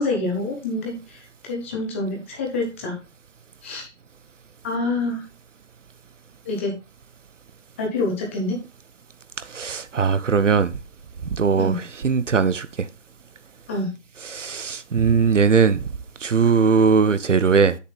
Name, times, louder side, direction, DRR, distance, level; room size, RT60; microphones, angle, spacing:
voice 1, 0.0-3.0 3.6-3.9 4.6-5.2 6.4-6.7 7.8-8.6 11.6-11.8 13.7-13.9, left 2 dB, 10° left, 1.0 m, -26 dB
voice 2, 9.5-10.7 11.3-12.9 14.3-15.8 16.2-17.8, right 5 dB, 80° right, 1.0 m, -19 dB
7.6 x 6.8 x 3.4 m
hypercardioid pair, 165°, 36 cm